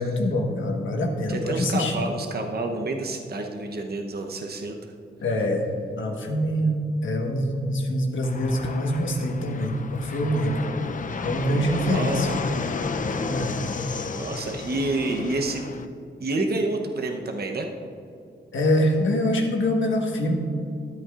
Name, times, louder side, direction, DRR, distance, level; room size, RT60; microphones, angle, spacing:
voice 1, 0.0-2.0 5.2-5.7 6.0-10.6 11.2-12.3 13.2-13.6 18.5-20.4, left 1 dB, 80° left, 1 dB, 1.4 m, -24 dB
voice 2, 1.3-4.9 11.7-12.3 14.0-15.6 16.2-17.7, right 2 dB, 55° right, 3 dB, 0.9 m, -29 dB
Fixed-wing aircraft airplane, 8.2-15.9, left 4 dB, 40° left, 0.5 m, -32 dB
13.5 x 8.3 x 2.5 m, 2.6 s
cardioid pair, 75°, 20 cm